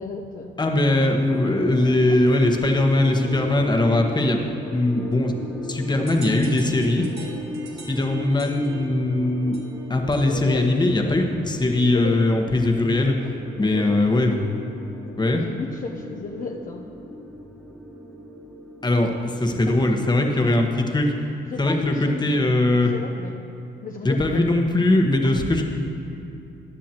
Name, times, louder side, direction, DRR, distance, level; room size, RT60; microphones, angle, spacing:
voice 1, 0.0-0.6 1.0-1.1 2.1-2.2 10.2-10.6 11.9-12.2 13.6-14.6 15.3-16.8 21.5-23.4 23.8-24.6 25.2-25.3, left 4 dB, 45° left, 0 dB, 0.8 m, -34 dB
voice 2, 0.6-5.3 5.7-7.1 7.9-9.6 9.9-13.2 13.5-14.3 15.2-15.4 18.8-21.1 21.6-22.9 24.0-25.6, left 2 dB, 20° left, 3 dB, 1.2 m, -20 dB
sound 1, 1.3-21.2, equal, ahead, 1.1 m, -37 dB
sound 2, 6.1-10.6, right 3 dB, 55° right, 1.8 m, -45 dB
15.5 x 10.5 x 2.9 m, 2.8 s
cardioid pair, 90°, 20 cm